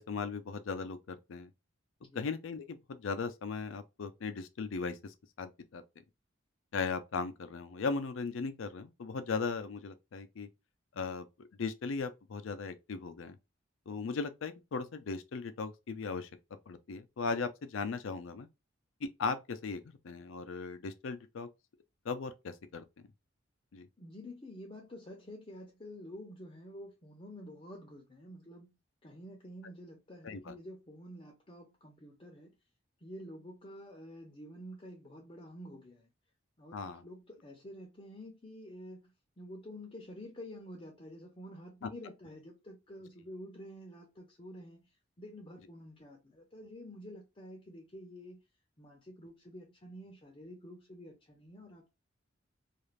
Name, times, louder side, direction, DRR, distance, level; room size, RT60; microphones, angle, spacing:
voice 1, 0.0-1.5 2.1-5.8 6.7-10.5 10.9-11.3 11.6-13.4 13.9-16.3 16.7-18.5 19.0-21.5 22.0-22.8 23.7-23.9 30.2-30.5 36.7-37.1, left 4 dB, 80° left, 0.5 m, -37 dB
voice 2, 24.0-28.8 29.0-32.6 33.0-36.1 36.6-48.4 48.8-51.9, equal, 30° left, 0.6 m, -49 dB
2.4 x 2.4 x 3.1 m
head